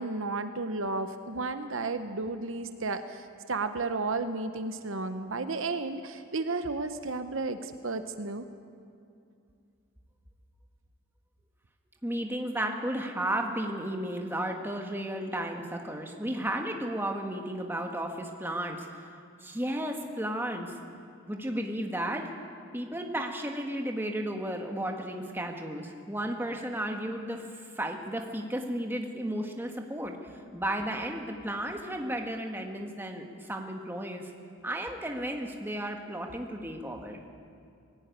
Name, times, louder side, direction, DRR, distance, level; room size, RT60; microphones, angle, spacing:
voice 1, 0.0-8.5, right 3 dB, 60° right, 9 dB, 0.9 m, -33 dB
voice 2, 12.0-19.1 19.4-20.8 21.3-22.3 22.7-34.3 34.6-37.2, right 1 dB, 10° right, 3 dB, 1.5 m, -34 dB
19.5 x 16.5 x 9.3 m, 2.5 s
head